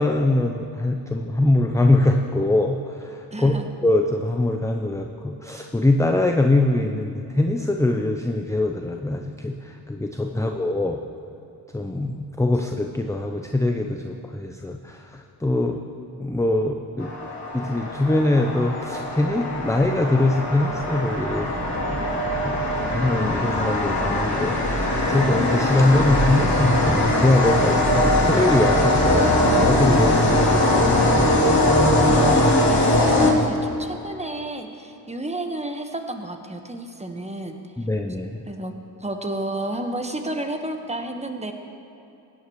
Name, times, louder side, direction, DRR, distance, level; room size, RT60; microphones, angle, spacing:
voice 1, 0.0-2.8 3.1-11.0 11.7-17.1 17.5-21.5 22.4-22.6 22.9-31.3 37.8-38.4, left 2 dB, 5° left, 3 dB, 0.6 m, -23 dB
voice 2, 3.3-3.7 10.3-10.6 32.1-37.9 38.5-38.7 39.0-41.5, right 1 dB, 15° right, 5 dB, 1.3 m, -31 dB
sound 1, 17.0-33.8, left 1 dB, 35° left, 2.8 m, -21 dB
16.5 x 9.9 x 3.1 m, 2.9 s
hypercardioid pair, 45°, 50 cm